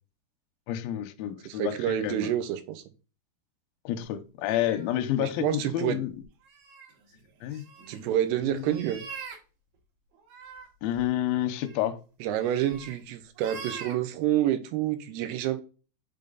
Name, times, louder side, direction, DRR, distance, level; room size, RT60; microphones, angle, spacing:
voice 1, 0.7-2.3 3.8-6.1 7.4-7.6 8.4-8.7 10.8-12.0, left 12 dB, 80° left, 2.2 m, -29 dB
voice 2, 1.5-2.8 5.2-6.0 7.9-9.1 12.2-15.6, right 11 dB, 85° right, 2.6 m, -28 dB
sound 1, 4.4-5.0 6.2-9.4 10.1-10.7 10.9-11.1 11.6-11.9 12.4-13.0 13.4-13.9, right 5 dB, 65° right, 3.0 m, -44 dB
6.8 x 3.6 x 3.8 m
omnidirectional pair, 4.9 m